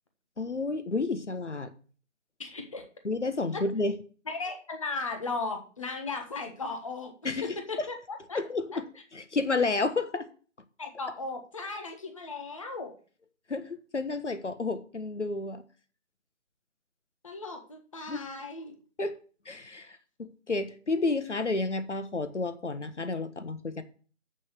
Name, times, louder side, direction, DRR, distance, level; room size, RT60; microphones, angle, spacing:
voice 1, 0.4-1.7 3.0-4.0 7.2-7.9 8.3-8.8 9.1-10.3 13.5-15.6 18.1-18.2 19.0-19.2 19.4-23.8, left 3 dB, 65° left, 1.3 m, -31 dB
voice 2, 2.4-2.9 3.5-3.6 4.3-7.1 7.4-8.4 10.8-12.9 17.2-18.7, left 3 dB, 25° left, 1.3 m, -36 dB
8.3 x 6.9 x 6.8 m
figure-of-eight pair, 165°, 37 cm